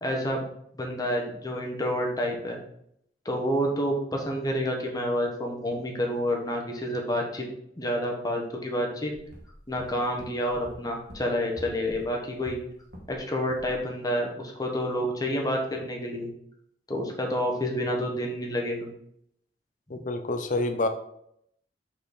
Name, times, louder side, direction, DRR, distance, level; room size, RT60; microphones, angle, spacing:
voice 1, 0.0-0.5 0.8-2.6 3.2-7.5 7.8-9.1 9.7-12.6 13.1-16.3 16.9-18.9 19.9-20.0, equal, 20° left, 1 dB, 1.0 m, -29 dB
sound 1, 9.1-13.2 13.5-13.8, equal, 60° right, 1.5 m, -46 dB
voice 2, 19.9-20.9, left 2 dB, 45° left, 6 dB, 0.6 m, -27 dB
5.3 x 4.3 x 4.1 m, 0.72 s
head